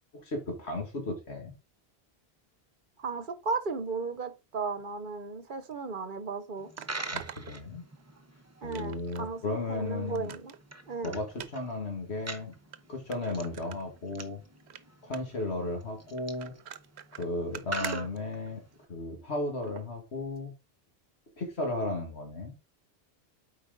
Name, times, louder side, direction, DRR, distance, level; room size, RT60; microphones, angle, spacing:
voice 1, 0.1-1.5 7.1-7.8 8.6-10.3 11.0-12.5 12.9-14.4 15.0-16.5 17.2-18.6 18.9-20.5 21.4-22.5, left 2 dB, 75° left, 2.1 m, -35 dB
voice 2, 3.0-6.7 8.6-10.5 10.9-11.2 17.8-18.1, right 4 dB, 50° right, 1.0 m, -35 dB
sound 1, 5.7-5.8 6.8-8.2 8.7-9.3 9.7-9.8 10.1-10.6 11.3-11.5 12.3-12.4 12.7-12.8 13.1-14.3 14.6-14.8 15.1-15.4 16.2-18.9 19.6-19.9 20.4-20.5, right 9 dB, 80° right, 1.0 m, -44 dB
Coin (dropping), 6.6-18.9, right 2 dB, 15° right, 0.8 m, -45 dB
8.2 x 4.8 x 3.8 m
omnidirectional pair, 1.1 m